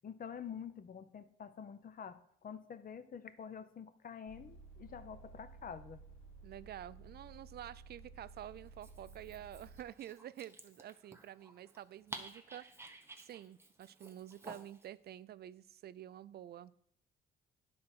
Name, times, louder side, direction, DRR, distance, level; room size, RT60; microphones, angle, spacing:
voice 1, 0.0-6.0, left 7 dB, 45° left, 12 dB, 0.8 m, -48 dB
sound 1, 4.3-9.8, right 3 dB, 90° left, 1.5 m, -55 dB
voice 2, 6.4-12.7 13.2-16.7, right 11 dB, 55° right, 18 dB, 0.4 m, -49 dB
Dog, 8.7-14.9, right 2 dB, 10° right, 1.0 m, -53 dB
9.7 x 4.2 x 6.1 m, 0.68 s
cardioid pair, 90°, 20 cm